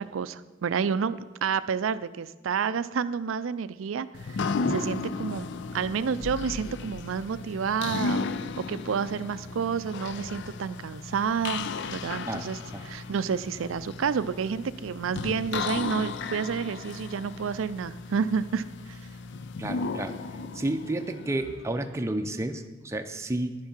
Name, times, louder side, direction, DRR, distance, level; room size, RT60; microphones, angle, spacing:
voice 1, 0.0-8.3 8.6-19.0, right 6 dB, 90° right, 15 dB, 0.4 m, -30 dB
sound 1, 4.1-22.0, left 4 dB, 65° left, 0.4 m, -35 dB
voice 2, 19.6-20.2 20.4-23.6, right 1 dB, 15° right, 6 dB, 0.5 m, -31 dB
10.5 x 10.5 x 4.4 m, 1.2 s
head